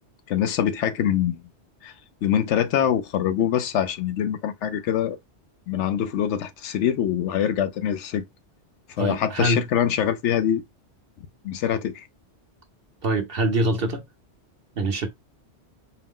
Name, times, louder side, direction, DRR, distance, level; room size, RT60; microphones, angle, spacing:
voice 1, 0.3-1.4 1.8-1.9 2.2-5.2 5.7-8.2 9.0-10.6 11.4-12.1, left 9 dB, 80° left, 0.9 m, -24 dB
voice 2, 9.0-9.6 13.0-14.0 14.8-15.1, right 1 dB, 55° right, 0.9 m, -24 dB
4.5 x 2.1 x 3.6 m
omnidirectional pair, 1.2 m